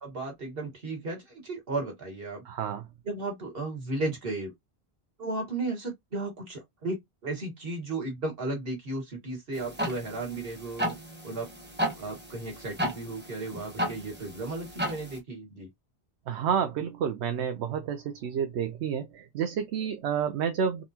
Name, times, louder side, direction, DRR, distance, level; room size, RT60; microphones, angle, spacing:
voice 1, 0.0-2.4 3.1-4.5 5.2-10.9 11.2-11.5 12.0-15.7, right 2 dB, 60° right, 1.7 m, -34 dB
voice 2, 2.5-2.8 16.3-20.8, right 7 dB, 85° right, 0.9 m, -30 dB
sound 1, 9.5-15.2, equal, 10° right, 0.7 m, -34 dB
3.9 x 2.4 x 2.8 m
omnidirectional pair, 1.1 m